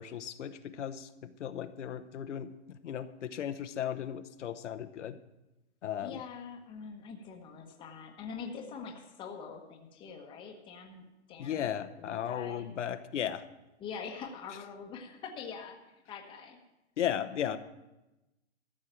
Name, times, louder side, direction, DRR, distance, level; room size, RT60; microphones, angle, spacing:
voice 1, 0.0-5.2 5.8-6.2 11.4-13.4 17.0-17.6, left 9 dB, 80° left, 9 dB, 1.0 m, -36 dB
voice 2, 6.0-12.7 13.8-16.6, left 6 dB, 15° left, 2 dB, 1.1 m, -44 dB
14.0 x 6.4 x 8.8 m, 0.97 s
hypercardioid pair, 160°, 35 cm